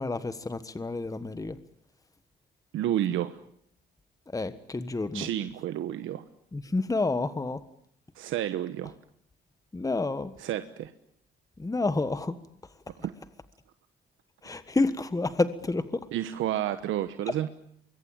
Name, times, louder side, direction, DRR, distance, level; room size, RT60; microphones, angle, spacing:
voice 1, 0.0-1.6 4.3-5.3 6.5-7.6 9.7-10.3 11.6-12.4 14.4-16.1 17.3-17.5, left 3 dB, 15° left, 13 dB, 1.5 m, -29 dB
voice 2, 2.7-3.4 5.1-6.2 8.1-8.9 10.4-10.9 13.0-13.1 16.1-17.5, right 12 dB, 85° right, 10 dB, 1.2 m, -30 dB
24.5 x 22.5 x 8.9 m, 0.68 s
cardioid pair, 90°, 20 cm